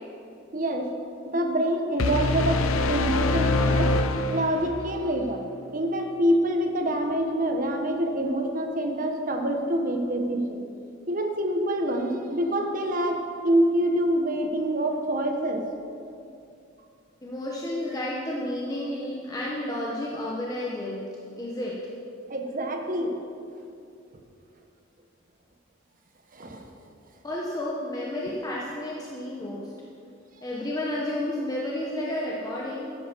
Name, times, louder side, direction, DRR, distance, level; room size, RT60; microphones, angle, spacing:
voice 1, 0.5-0.9 1.2-2.6 2.9-4.0 4.3-5.4 5.7-10.6 11.1-15.6 22.3-23.2 26.3-26.6, right 1 dB, 40° right, 3 dB, 1.2 m, -26 dB
sound 1, 2.0-5.0, left 2 dB, 80° left, 0.7 m, -24 dB
voice 2, 17.2-21.0 21.4-21.8 27.2-29.7 30.4-32.9, left 1 dB, 20° left, -5 dB, 1.2 m, -31 dB
13.5 x 11.0 x 4.7 m, 2.5 s
head